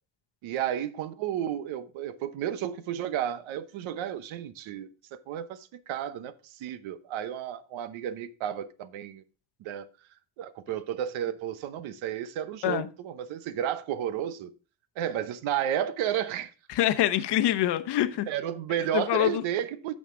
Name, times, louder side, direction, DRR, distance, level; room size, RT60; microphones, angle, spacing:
voice 1, 0.4-9.2 9.6-9.9 10.4-14.5 15.0-16.5 18.3-19.9, right 10 dB, 75° right, 0.9 m, -32 dB
voice 2, 16.7-18.3 18.9-19.4, left 12 dB, 55° left, 0.9 m, -25 dB
8.9 x 6.6 x 3.6 m
cardioid pair, 130°, 47 cm